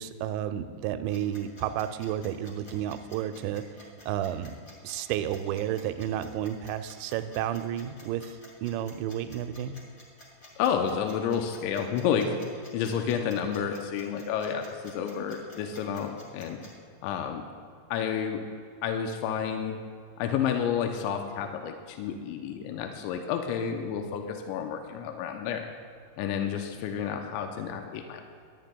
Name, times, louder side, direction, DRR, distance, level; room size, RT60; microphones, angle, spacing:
voice 1, 0.0-4.5 4.8-9.7, right 11 dB, 85° right, 10 dB, 2.8 m, -32 dB
sound 1, 1.1-16.7, left 1 dB, 40° left, 1.3 m, -51 dB
voice 2, 10.6-12.4 12.7-16.6 17.0-17.5 17.9-18.4 18.8-19.8 20.2-25.7 26.2-28.2, left 7 dB, 85° left, 4 dB, 3.0 m, -30 dB
18.5 x 11.5 x 2.3 m, 2.2 s
omnidirectional pair, 5.2 m